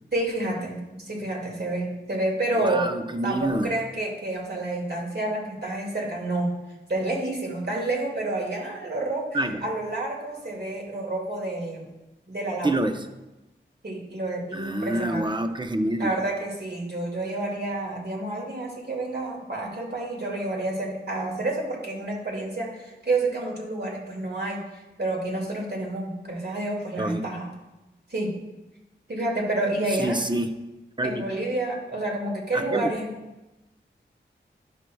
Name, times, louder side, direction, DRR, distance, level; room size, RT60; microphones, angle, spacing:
voice 1, 0.1-2.9 3.2-6.5 6.9-9.3 9.6-11.9 12.3-12.8 13.8-15.3 16.0-24.6 25.0-27.5 28.1-28.3 29.1-30.2 31.0-33.1, right 2 dB, 55° right, -2 dB, 2.2 m, -29 dB
voice 2, 2.6-3.7 9.3-9.7 12.6-13.1 14.5-16.2 27.0-27.3 30.0-30.6 31.0-31.2 32.5-32.9, right 1 dB, 25° right, 7 dB, 0.7 m, -27 dB
11.0 x 6.1 x 2.3 m, 1.0 s
cardioid pair, 45°, 20 cm